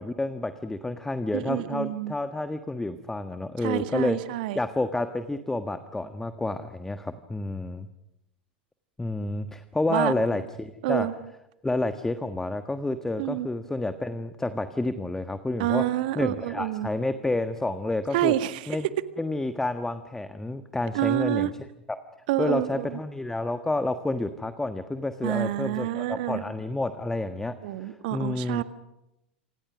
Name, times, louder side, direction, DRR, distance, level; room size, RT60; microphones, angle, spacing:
voice 1, 0.0-4.2 4.5-7.9 9.0-11.1 11.6-15.8 16.1-18.3 18.7-18.9 19.2-21.5 22.4-27.5 27.8-28.6, left 2 dB, 10° left, 9 dB, 1.4 m, -29 dB
voice 2, 1.3-2.1 3.6-4.6 9.9-10.1 10.8-11.1 13.2-13.5 15.6-16.9 18.1-18.6 20.9-21.5 22.3-23.0 25.2-26.4 27.6-28.6, right 14 dB, 60° right, 11 dB, 1.7 m, -28 dB
28.5 x 26.5 x 6.2 m, 0.89 s
figure-of-eight pair, 90°, 6 cm